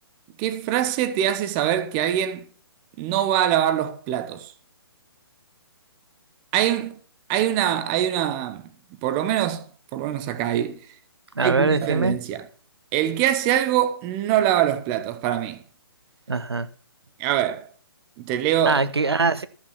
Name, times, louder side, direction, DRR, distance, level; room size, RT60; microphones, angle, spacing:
voice 1, 0.4-2.5 3.0-4.5 6.5-7.0 7.3-8.6 9.0-10.8 11.4-12.4 12.9-15.6 17.2-17.7 18.2-18.8, right 11 dB, 25° right, 1.1 m, -23 dB
voice 2, 11.3-12.2 16.3-16.7 18.6-19.5, right 3 dB, 80° right, 1.2 m, -22 dB
13.5 x 6.2 x 6.2 m
figure-of-eight pair, 135°, 13 cm